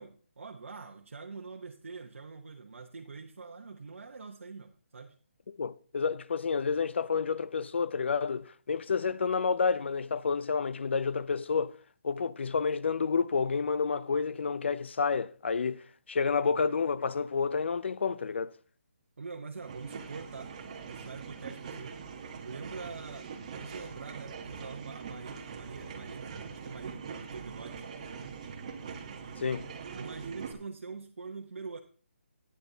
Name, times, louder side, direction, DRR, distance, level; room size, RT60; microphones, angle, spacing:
voice 1, 0.0-5.2 19.2-20.5 20.8-21.9 22.4-27.9 29.9-31.8, right 4 dB, 75° right, 0.9 m, -44 dB
voice 2, 5.5-11.7 12.0-18.6 29.4-29.7, left 5 dB, 60° left, 0.4 m, -29 dB
sound 1, 19.5-30.5, right 5 dB, 30° right, 1.0 m, -43 dB
11.5 x 9.4 x 2.7 m
hypercardioid pair, 170°, 7 cm